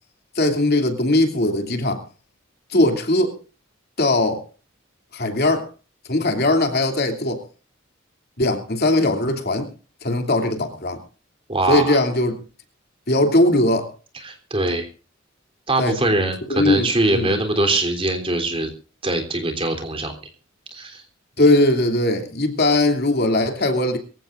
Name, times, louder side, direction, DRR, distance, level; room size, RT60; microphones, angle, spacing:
voice 1, 0.3-2.0 2.7-3.3 4.0-4.4 5.1-5.7 6.1-7.4 8.4-9.7 10.0-11.0 11.7-12.3 13.1-13.9 15.8-16.0 16.5-17.3 21.4-24.0, left 2 dB, 50° left, 2.9 m, -19 dB
voice 2, 11.5-12.0 14.2-14.9 15.7-18.7 19.0-20.1 20.7-21.0, right 2 dB, 25° right, 3.5 m, -22 dB
24.0 x 15.5 x 2.6 m
head